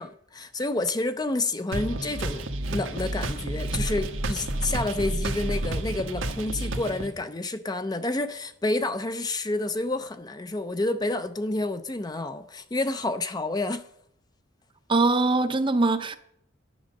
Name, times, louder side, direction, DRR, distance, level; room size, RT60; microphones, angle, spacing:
voice 1, 0.0-2.5 2.7-13.9, left 2 dB, 20° left, 0.5 m, -29 dB
sound 1, 1.7-7.1, right 1 dB, 90° right, 1.4 m, -30 dB
voice 2, 14.9-16.2, right 3 dB, 25° right, 0.7 m, -22 dB
10.5 x 10.0 x 6.4 m
head